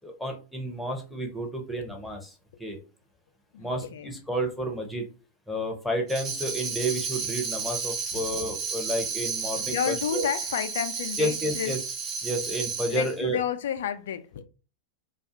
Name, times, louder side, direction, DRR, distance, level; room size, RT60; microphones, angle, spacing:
voice 1, 0.0-2.3 2.6-2.8 3.6-5.1 5.5-10.2 11.2-11.8 12.2-13.4, right 1 dB, 5° left, 0.7 m, -31 dB
voice 2, 3.5-4.2 8.1-8.3 9.7-11.8 12.9-14.4, left 9 dB, 60° left, 0.3 m, -31 dB
Tambourine, 6.1-13.2, right 5 dB, 30° right, 0.6 m, -32 dB
2.4 x 2.3 x 2.6 m
figure-of-eight pair, 90°, 0 cm